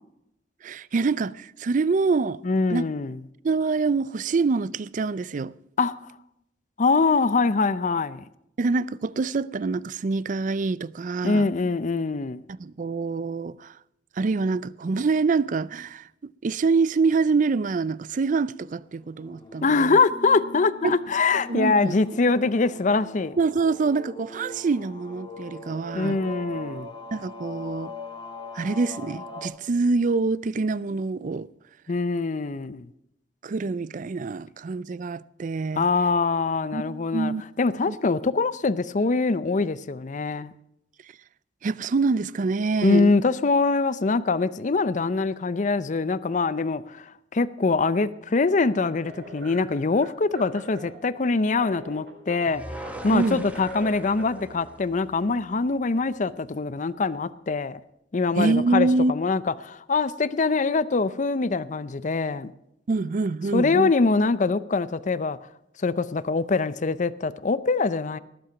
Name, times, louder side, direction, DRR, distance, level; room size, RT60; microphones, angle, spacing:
voice 1, 0.6-2.4 2.7-2.8 3.4-5.5 8.6-11.5 12.6-13.7 14.2-20.0 20.8-21.0 21.5-21.9 23.4-26.2 27.1-27.9 28.5-31.5 33.4-35.9 36.7-37.4 37.9-38.0 41.6-43.1 53.1-53.4 58.4-59.1 62.9-63.9, right 4 dB, 45° right, 0.4 m, -25 dB
voice 2, 2.4-3.2 5.8-5.9 6.8-8.2 11.2-12.4 19.6-23.4 25.9-26.9 31.9-32.9 35.8-40.5 42.8-47.0 47.3-57.8 58.1-62.5 63.5-65.4 65.8-68.2, left 4 dB, 45° left, 0.5 m, -24 dB
sound 1, 19.2-29.5, left 2 dB, 25° left, 1.7 m, -41 dB
sound 2, 48.4-54.6, right 1 dB, 65° right, 4.3 m, -43 dB
sound 3, 52.5-55.7, right 1 dB, 10° right, 1.2 m, -41 dB
18.5 x 7.9 x 5.8 m
head